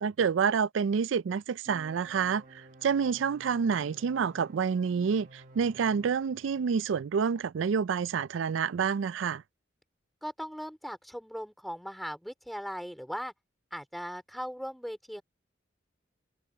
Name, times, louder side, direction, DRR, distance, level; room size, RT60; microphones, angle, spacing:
voice 1, 0.0-9.4, right 6 dB, 85° right, 0.4 m, -28 dB
sound 1, 1.7-6.7, right 2 dB, 45° right, 1.4 m, -53 dB
voice 2, 10.2-13.3 13.7-15.2, equal, ahead, 3.7 m, -38 dB
head